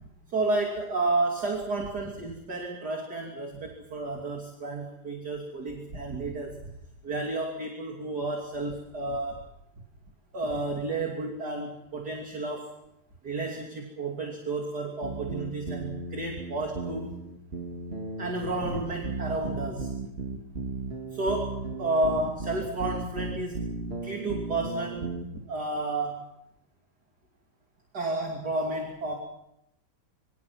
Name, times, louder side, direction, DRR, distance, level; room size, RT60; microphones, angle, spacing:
voice 1, 0.3-6.6 7.0-9.4 10.3-12.7 13.2-17.1 18.2-19.9 21.1-23.6 24.0-25.2 25.5-26.3 27.9-29.1, right 2 dB, 45° right, 1 dB, 3.4 m, -31 dB
sound 1, 15.0-25.2, right 3 dB, 30° right, 1.9 m, -36 dB
26.0 x 24.5 x 6.0 m, 0.82 s
omnidirectional pair, 2.4 m